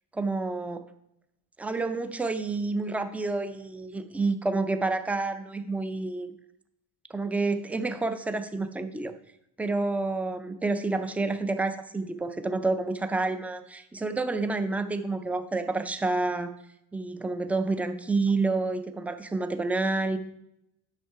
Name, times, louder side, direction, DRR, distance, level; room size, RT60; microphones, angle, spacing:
voice 1, 0.1-0.9 1.6-6.3 7.1-9.1 9.6-16.5 16.9-20.2, right 3 dB, 5° right, 9 dB, 0.3 m, -29 dB
9.1 x 6.5 x 4.6 m, 0.83 s
cardioid pair, 160°, 34 cm